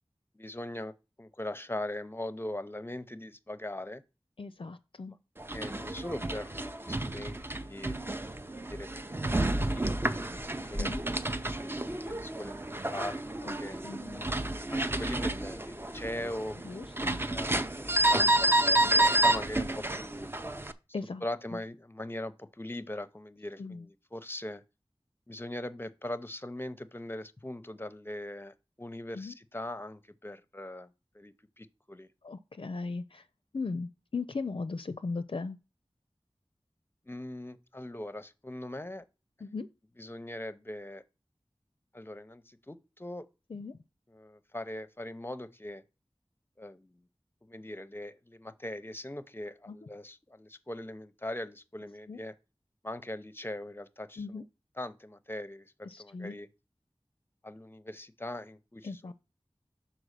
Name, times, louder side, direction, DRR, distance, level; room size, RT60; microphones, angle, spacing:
voice 1, 0.3-4.0 5.1-5.2 5.5-8.0 8.5-9.3 10.0-10.9 11.3-13.8 14.7-20.3 21.2-24.6 25.3-32.1 37.1-39.0 40.0-41.0 41.9-43.3 44.1-45.8 46.6-47.0 47.4-52.3 52.8-54.4 54.8-56.5 57.4-59.1, left 1 dB, 20° left, 0.7 m, -41 dB
voice 2, 4.4-5.1 10.8-11.0 13.4-13.6 13.8-14.2 16.6-17.2 18.8-18.9 20.9-21.2 23.6-23.9 29.1-29.3 32.2-33.3 33.5-35.6 39.4-39.7 43.5-43.8 49.7-49.8 52.1-52.2 54.2-54.4 55.8-56.3 58.8-59.1, left 4 dB, 60° left, 0.4 m, -38 dB
sound 1, 5.4-20.7, right 1 dB, 20° right, 0.6 m, -30 dB
6.1 x 4.5 x 6.6 m
wide cardioid pair, 55°, 10 cm